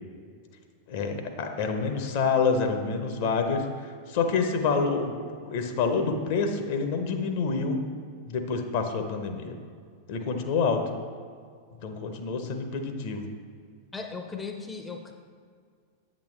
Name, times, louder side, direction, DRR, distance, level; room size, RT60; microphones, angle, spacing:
voice 1, 0.9-5.1 5.4-7.8 8.2-9.6 10.1-10.8 11.8-13.3, left 4 dB, 50° left, 6 dB, 0.7 m, -27 dB
voice 2, 13.9-15.1, left 4 dB, 10° left, 4 dB, 0.5 m, -37 dB
8.4 x 6.2 x 3.3 m, 2.1 s
figure-of-eight pair, 90°, 0 cm